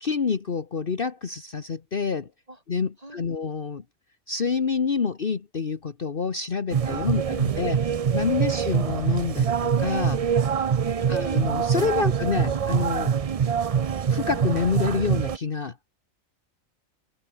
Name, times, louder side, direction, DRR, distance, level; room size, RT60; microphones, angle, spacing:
voice 1, 0.0-2.3 2.7-3.8 4.3-10.2 11.1-13.1 14.1-15.9, left 5 dB, 45° left, 1.3 m, -27 dB
voice 2, 3.0-3.4 10.8-11.2 11.7-12.1, right 1 dB, 25° right, 5.7 m, -47 dB
sound 1, 6.7-15.4, right 7 dB, 65° right, 0.3 m, -24 dB
omnidirectional pair, 1.4 m